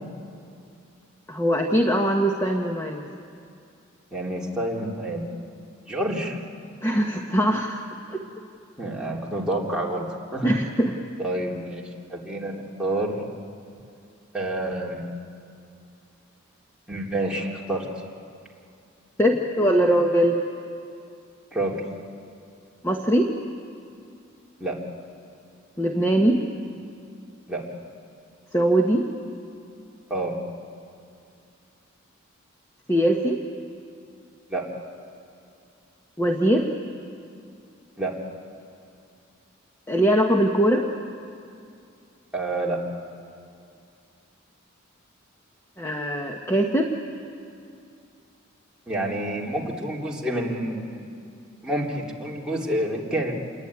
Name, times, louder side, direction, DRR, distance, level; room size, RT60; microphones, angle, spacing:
voice 1, 1.3-3.1 6.8-7.8 10.4-11.0 19.2-20.4 22.8-23.3 25.8-26.4 28.5-29.1 32.9-33.4 36.2-36.7 39.9-40.9 45.8-46.9, right 1 dB, 15° left, 2 dB, 1.3 m, -21 dB
voice 2, 4.1-5.2 5.9-6.4 8.8-10.5 11.2-11.8 12.1-13.2 14.3-15.1 16.9-17.9 21.5-21.7 24.6-24.7 27.5-27.6 30.1-30.4 34.5-34.6 38.0-38.1 42.3-42.8 48.9-51.1 51.6-53.3, right 1 dB, 5° right, -4 dB, 3.3 m, -28 dB
28.5 x 21.5 x 9.7 m, 2.5 s
head